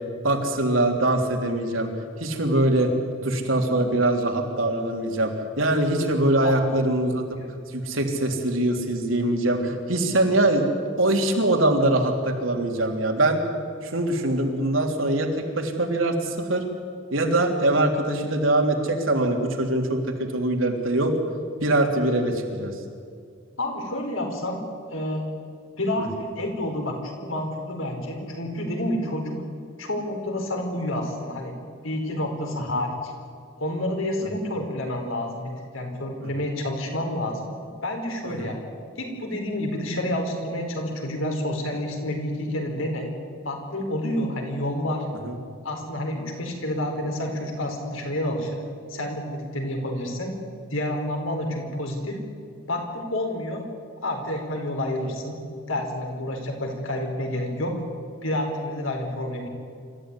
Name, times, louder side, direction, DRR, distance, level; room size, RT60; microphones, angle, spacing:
voice 1, 0.2-1.9 2.2-2.9 3.2-7.2 7.7-10.6 11.0-13.4 13.8-16.6 17.1-21.2 21.6-22.7 26.0-26.1 36.2-36.3 38.2-38.5 45.2-45.4, right 1 dB, 80° right, 2 dB, 3.4 m, -23 dB
voice 2, 6.4-6.8 7.3-7.5 23.6-24.6 24.9-25.5 25.8-29.4 29.8-31.5 31.8-33.1 33.6-37.5 37.8-38.6 39.0-43.1 43.4-45.1 45.6-48.6 48.9-50.3 50.7-52.2 52.7-53.7 54.0-55.4 55.7-57.8 58.2-59.5, left 1 dB, 85° left, 3 dB, 4.7 m, -29 dB
26.0 x 14.5 x 9.9 m, 2.2 s
head